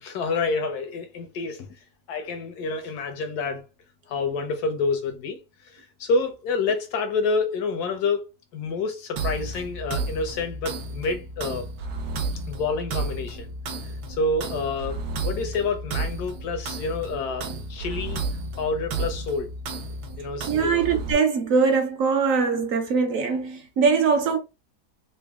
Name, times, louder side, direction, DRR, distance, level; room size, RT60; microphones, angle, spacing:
voice 1, 0.0-1.7 2.1-3.6 4.1-5.4 5.6-8.3 8.5-11.7 12.5-13.5 14.1-18.2 18.6-19.5 20.2-20.9, left 3 dB, 90° left, 1.4 m, -28 dB
sound 1, 9.2-21.1, right 3 dB, 85° right, 1.3 m, -32 dB
voice 2, 20.5-24.4, right 5 dB, 65° right, 1.0 m, -22 dB
4.0 x 2.2 x 3.4 m
omnidirectional pair, 1.6 m